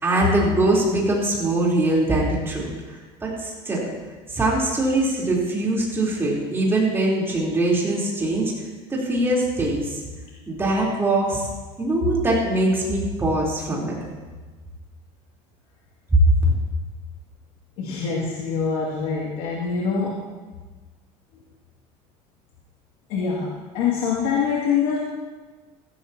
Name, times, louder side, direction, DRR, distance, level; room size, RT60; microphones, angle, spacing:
voice 1, 0.0-3.9 4.3-8.5 8.9-10.0 10.5-11.5 11.8-14.0 16.1-16.2, right 2 dB, 15° right, -4 dB, 3.9 m, -22 dB
voice 2, 17.8-20.3 23.1-25.0, left 6 dB, 75° left, -5 dB, 2.6 m, -24 dB
16.5 x 15.5 x 2.9 m, 1.3 s
cardioid pair, 145°, 14 cm